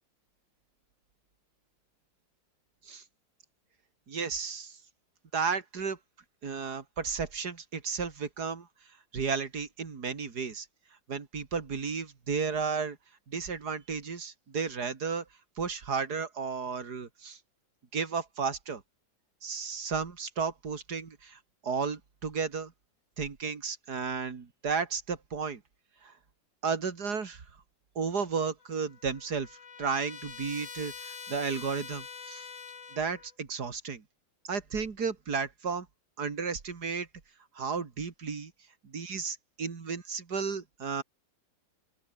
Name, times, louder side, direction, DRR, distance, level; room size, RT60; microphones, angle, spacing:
voice 1, 4.1-4.8 5.3-6.0 6.4-8.7 9.1-10.7 11.1-13.0 13.3-15.2 15.6-17.4 17.9-18.8 19.4-22.7 23.2-25.6 26.0-26.1 26.6-27.4 28.0-29.5 29.8-32.4 32.9-34.0 34.5-35.9 36.2-37.1 37.5-38.5 38.8-41.0, right 5 dB, 55° right, 2.8 m, -33 dB
Trumpet, 28.6-33.3, left 6 dB, 75° left, 3.0 m, -45 dB
open air
omnidirectional pair, 2.0 m